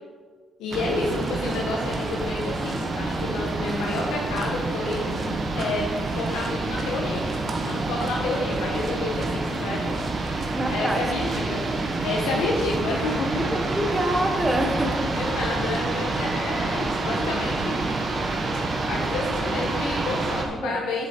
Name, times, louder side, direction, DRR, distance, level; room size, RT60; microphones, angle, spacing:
voice 1, 0.6-7.2 7.6-9.9 10.7-13.3 15.0-17.8 18.9-21.1, left 2 dB, 85° left, -2 dB, 1.2 m, -30 dB
sound 1, 0.7-20.5, right 2 dB, 45° right, 1.4 m, -28 dB
voice 2, 10.5-11.0 11.3-11.5 13.4-15.1 20.5-20.8, right 1 dB, 20° right, 4 dB, 1.4 m, -26 dB
7.7 x 7.1 x 4.6 m, 1.5 s
supercardioid pair, 65°, 0 cm